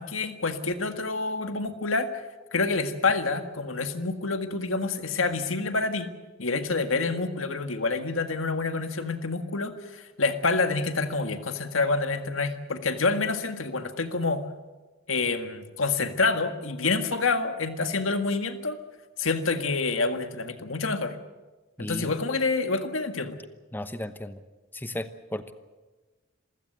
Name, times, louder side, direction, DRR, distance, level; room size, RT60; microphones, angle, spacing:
voice 1, 0.0-2.1 2.5-6.1 6.4-14.4 15.1-18.8 19.2-21.2 21.8-23.3, left 3 dB, 75° left, 8 dB, 1.8 m, -27 dB
voice 2, 21.8-22.1 23.7-24.4 24.7-25.5, left 1 dB, 10° left, 11 dB, 0.9 m, -35 dB
27.0 x 16.0 x 8.0 m, 1.2 s
head